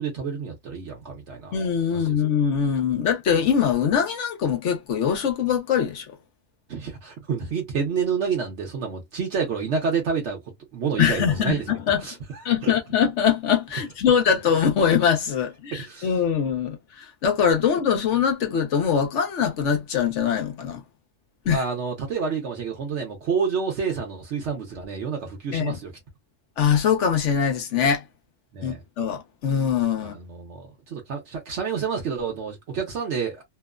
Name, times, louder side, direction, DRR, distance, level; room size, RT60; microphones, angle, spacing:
voice 1, 0.0-1.6 1.9-2.2 6.7-11.7 12.0-12.7 15.7-16.2 21.5-25.9 28.5-28.8 30.0-33.4, right 6 dB, 65° right, 1.0 m, -29 dB
voice 2, 1.5-6.0 11.0-12.0 12.4-20.8 21.5-21.6 25.5-25.8 26.6-28.0 28.6-30.2, left 7 dB, 65° left, 1.0 m, -22 dB
2.9 x 2.0 x 2.3 m
omnidirectional pair, 1.4 m